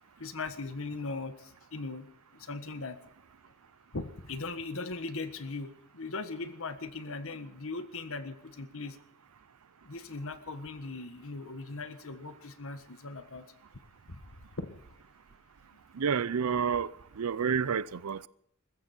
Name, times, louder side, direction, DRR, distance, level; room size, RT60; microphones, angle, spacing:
voice 1, 0.2-2.1 2.3-3.0 3.9-9.0 9.8-13.4 14.1-14.2 14.6-14.8, left 3 dB, 65° left, 1.5 m, -39 dB
voice 2, 15.9-16.9 17.2-18.3, right 6 dB, 90° right, 0.6 m, -29 dB
20.5 x 15.0 x 4.4 m
head